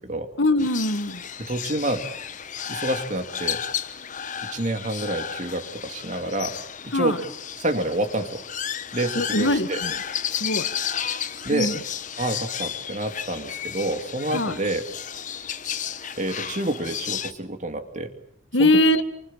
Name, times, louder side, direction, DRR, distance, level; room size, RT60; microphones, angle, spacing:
voice 1, 0.4-1.2 6.9-7.2 9.2-9.9 10.4-10.7 11.5-11.7 14.3-14.6 18.5-19.0, left 1 dB, 70° left, 10 dB, 1.9 m, -21 dB
sound 1, 0.6-17.3, left 8 dB, 40° left, 1.2 m, -33 dB
voice 2, 1.4-2.1 2.7-3.6 4.4-6.6 6.8-7.2 7.6-8.4 8.9-9.8 11.4-11.7 12.2-14.8 15.5-15.6 16.2-18.1 18.6-18.8, right 1 dB, 40° right, 7 dB, 2.7 m, -28 dB
29.0 x 25.0 x 7.6 m, 0.68 s
head